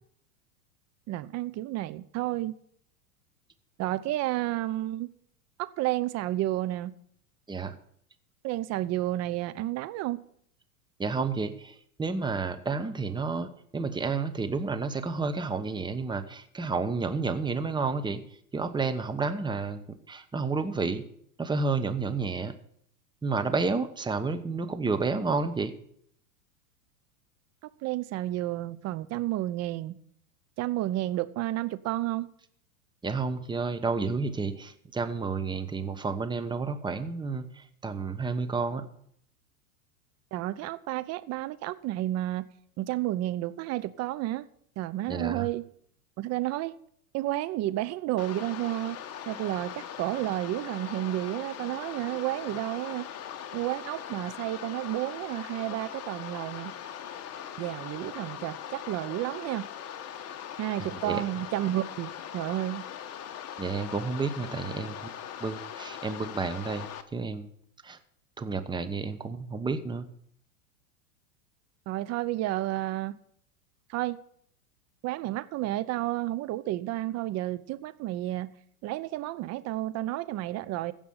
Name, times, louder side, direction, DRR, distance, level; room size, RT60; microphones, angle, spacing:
voice 1, 1.1-2.6 3.8-5.1 5.6-6.9 8.4-10.2 27.6-30.0 30.6-32.3 40.3-42.5 42.8-44.5 44.8-45.6 46.2-46.8 47.1-49.0 49.3-53.1 53.5-56.8 57.6-59.7 60.6-62.8 71.9-73.2 73.9-74.2 75.0-78.5 78.8-80.9, right 15 dB, 35° right, 0.8 m, -31 dB
voice 2, 11.0-18.2 18.5-21.0 21.4-22.5 23.2-25.7 33.0-37.4 37.8-38.8 45.1-45.5 60.8-61.2 63.6-65.0 65.4-66.9 67.1-67.5 67.8-68.0 68.4-70.1, right 4 dB, 10° right, 1.1 m, -30 dB
sound 1, 48.2-67.0, left 9 dB, 35° left, 1.3 m, -41 dB
15.5 x 5.4 x 8.7 m
hypercardioid pair, 100°, 45 cm